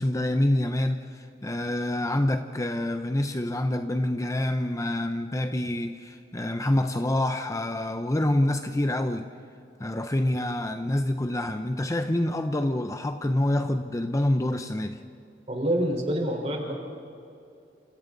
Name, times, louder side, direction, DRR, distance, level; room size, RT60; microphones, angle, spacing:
voice 1, 0.0-9.3 9.8-15.0, left 1 dB, 20° left, 0.7 m, -27 dB
voice 2, 15.5-16.7, right 1 dB, 35° right, 4.4 m, -26 dB
29.0 x 27.5 x 4.0 m
head